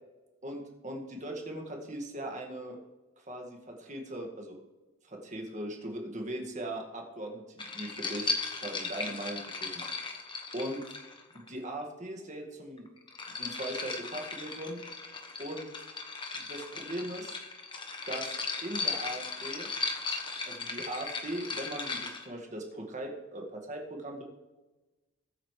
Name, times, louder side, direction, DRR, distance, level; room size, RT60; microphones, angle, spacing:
voice 1, 0.4-2.8 3.3-4.6 5.0-9.8 10.5-10.8 11.3-12.9 13.4-14.8 15.4-15.7 16.3-17.3 18.1-18.3 18.6-19.7 20.5-24.2, right 1 dB, 35° right, 1 dB, 1.9 m, -39 dB
sound 1, 7.6-11.5 12.8-22.3, left 4 dB, 20° left, 1.2 m, -37 dB
21.0 x 8.4 x 3.3 m, 1.1 s
head